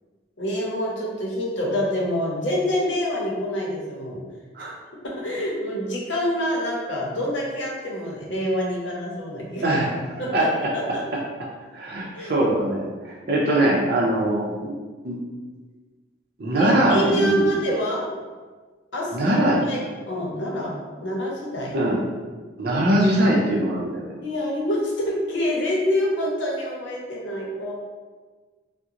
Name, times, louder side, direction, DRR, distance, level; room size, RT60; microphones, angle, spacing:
voice 1, 0.4-4.2 5.2-9.6 10.2-10.5 10.7-11.0 12.1-12.3 16.5-18.1 18.9-19.3 19.7-19.8 20.1-21.8 24.2-27.7, equal, 80° left, -3 dB, 0.8 m, -26 dB
voice 2, 9.6-10.7 11.7-14.7 15.0-15.2 16.4-17.5 19.1-19.6 21.7-22.0 22.6-24.1, right 1 dB, 55° right, -4 dB, 0.5 m, -22 dB
3.6 x 2.1 x 2.8 m, 1.4 s
head